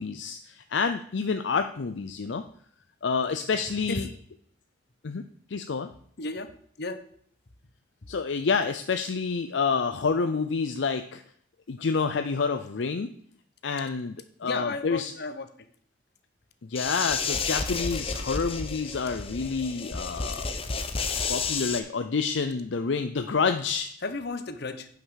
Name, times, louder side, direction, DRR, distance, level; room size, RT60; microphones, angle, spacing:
voice 1, 0.0-2.4 3.0-4.1 5.0-5.2 5.5-5.9 8.1-11.2 11.7-13.1 13.6-15.1 16.6-20.5 21.3-23.9, left 5 dB, 75° left, 8 dB, 0.5 m, -28 dB
voice 2, 6.2-6.5 6.8-7.0 14.4-15.5 20.3-20.4 24.0-24.9, left 3 dB, 60° left, 9 dB, 1.0 m, -33 dB
sound 1, 16.7-21.8, left 4 dB, 30° left, 0.9 m, -31 dB
9.3 x 5.7 x 6.3 m, 0.62 s
head